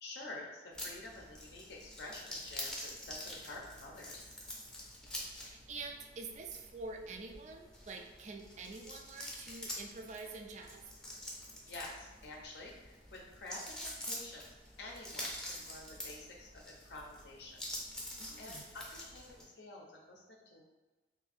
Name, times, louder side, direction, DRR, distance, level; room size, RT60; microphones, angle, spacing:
voice 1, 0.0-4.2 11.6-14.4 14.8-17.6 18.4-20.6, left 2 dB, 70° left, -1 dB, 0.6 m, -49 dB
sound 1, 0.7-19.4, left 1 dB, 5° left, 0.6 m, -47 dB
voice 2, 5.3-10.8 18.2-18.7, right 3 dB, 40° right, 3 dB, 0.4 m, -47 dB
2.7 x 2.6 x 4.0 m, 1.2 s
head